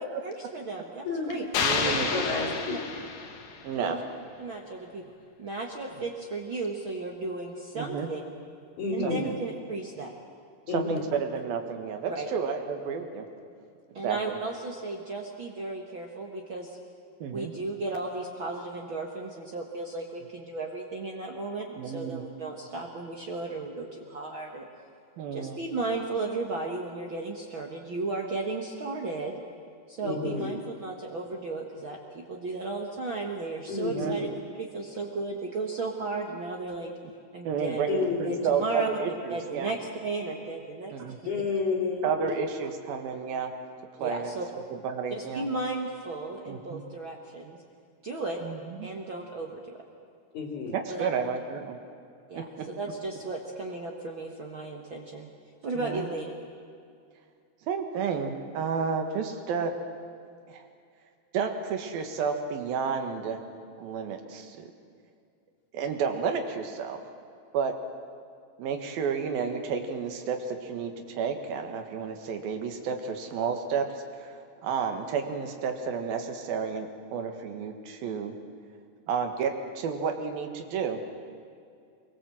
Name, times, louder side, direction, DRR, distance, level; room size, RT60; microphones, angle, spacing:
voice 1, 0.2-1.4 1.8-2.8 3.7-4.0 4.4-5.0 5.4-8.2 8.9-10.1 12.1-12.3 13.9-16.8 17.3-24.7 25.3-29.4 29.9-34.3 34.6-36.9 37.3-37.8 38.2-40.9 44.0-44.5 45.1-47.6 48.0-48.4 48.8-49.8 50.9-51.1 52.3-55.3 55.6-56.3, right 3 dB, 45° right, 1 dB, 1.8 m, -35 dB
voice 2, 1.1-1.4 2.1-2.8 8.8-9.3 10.7-11.0 30.0-30.6 33.7-34.1 37.9-38.4 41.3-42.3 50.3-50.8, left 4 dB, 55° left, 1 dB, 3.9 m, -30 dB
sound 1, 1.5-3.7, left 5 dB, 80° left, 3.6 m, -29 dB
voice 3, 1.6-2.1 3.6-4.0 7.8-8.1 9.0-9.3 10.7-13.2 14.0-14.4 17.2-17.5 21.8-22.2 25.2-25.6 30.1-30.3 33.9-34.3 37.4-39.7 40.9-41.2 42.0-43.5 44.0-44.3 44.7-45.5 46.5-46.8 48.4-48.9 50.7-51.8 52.4-52.5 55.8-56.1 57.7-59.7 60.5-60.6 61.3-63.4 63.8-64.7 65.7-67.0 67.5-67.8 68.6-74.4 74.6-78.3 79.1-81.1, right 6 dB, 85° right, 5 dB, 3.5 m, -31 dB
24.5 x 22.5 x 7.7 m, 2.3 s
omnidirectional pair, 4.1 m